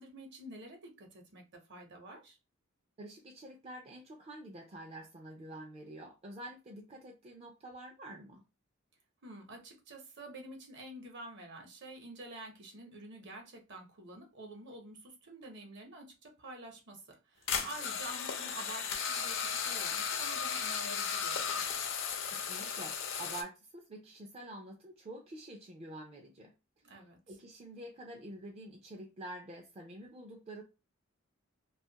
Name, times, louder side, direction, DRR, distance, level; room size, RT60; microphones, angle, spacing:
voice 1, 0.0-2.4 9.2-21.6 26.8-27.2, right 2 dB, 55° right, 0.8 m, -49 dB
voice 2, 3.0-8.4 22.3-26.5 27.3-30.6, right 1 dB, 30° right, 0.4 m, -47 dB
sound 1, 17.5-23.4, left 6 dB, 65° left, 0.5 m, -35 dB
2.5 x 2.3 x 2.8 m
head